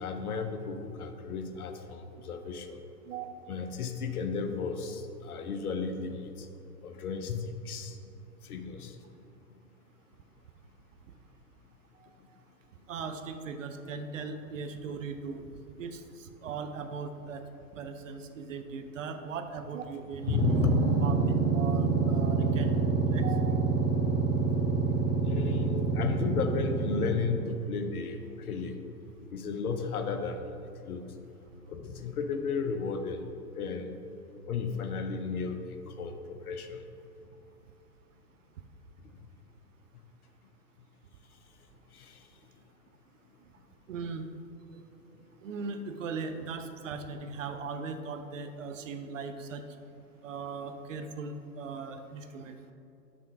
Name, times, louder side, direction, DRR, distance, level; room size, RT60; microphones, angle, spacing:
voice 1, 0.0-2.8 3.5-6.5 6.8-8.0 8.4-8.9 20.3-20.8 24.7-24.8 25.2-28.8 29.3-30.5 30.9-31.1 31.7-33.2 33.6-34.0 34.5-35.6 35.9-36.8 41.9-42.2, left 5 dB, 60° left, 7 dB, 0.7 m, -33 dB
voice 2, 3.1-3.5 12.0-12.1 12.9-15.5 15.8-17.4 17.8-20.7 21.0-23.6 43.9-44.3 45.4-49.6 50.2-52.6, right 5 dB, 55° right, 7 dB, 0.5 m, -39 dB
sound 1, 20.1-27.5, right 4 dB, 20° right, 0.9 m, -27 dB
6.1 x 3.5 x 5.1 m, 2.7 s
figure-of-eight pair, 105°, 49 cm